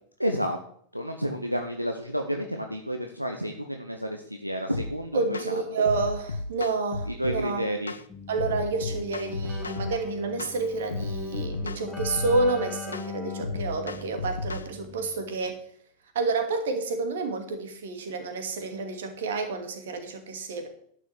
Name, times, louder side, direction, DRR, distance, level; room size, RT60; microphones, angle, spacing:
voice 1, 0.2-0.6 0.9-5.6 7.2-7.9, equal, 90° right, 4 dB, 1.0 m, -30 dB
sound 1, 4.7-4.9 5.3-5.5 5.9-7.5 7.9-8.1 8.4-10.0 10.4-10.6 10.9-12.5 12.9-13.1 13.4-14.7, left 3 dB, 75° left, 0.6 m, -33 dB
voice 2, 5.1-7.7 8.3-15.6 16.1-20.7, right 3 dB, 60° right, 6 dB, 2.4 m, -29 dB
Keyboard (musical), 8.1-15.4, left 5 dB, 10° left, 2.1 m, -41 dB
11.0 x 6.3 x 8.2 m, 0.62 s
figure-of-eight pair, 90°, 0 cm